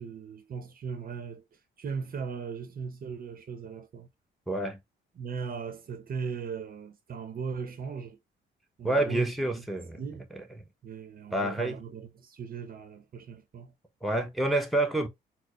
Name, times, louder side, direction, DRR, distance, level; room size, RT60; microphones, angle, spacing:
voice 1, 0.0-1.4 1.8-4.1 5.2-8.2 8.8-9.3 10.0-10.3 10.8-13.7, right 5 dB, 45° right, 0.7 m, -38 dB
voice 2, 4.5-4.8 8.8-10.0 11.3-11.8 14.0-15.1, right 1 dB, ahead, 0.8 m, -28 dB
4.3 x 2.0 x 2.9 m
cardioid pair, 90°, 20 cm